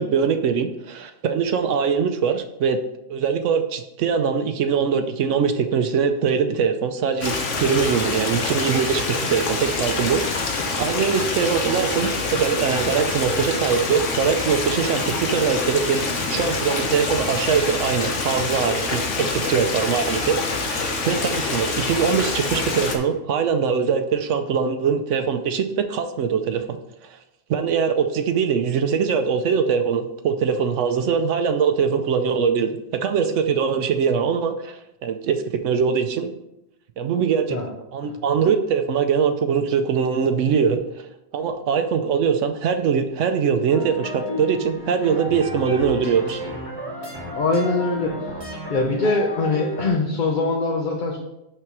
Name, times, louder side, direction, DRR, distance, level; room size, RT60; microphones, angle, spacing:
voice 1, 0.0-2.8 3.1-10.2 10.8-20.4 20.6-26.8 27.0-27.2 27.5-36.3 37.0-37.6 37.9-40.8 41.3-46.4, right 6 dB, 85° right, 8 dB, 1.0 m, -22 dB
Stream, 7.2-23.0, left 3 dB, 90° left, 1.4 m, -26 dB
sound 1, 43.7-49.9, equal, 20° right, 1.5 m, -33 dB
voice 2, 47.3-48.1 48.7-51.2, left 3 dB, 45° left, 1 dB, 0.9 m, -22 dB
6.0 x 5.8 x 4.6 m, 0.88 s
omnidirectional pair, 1.2 m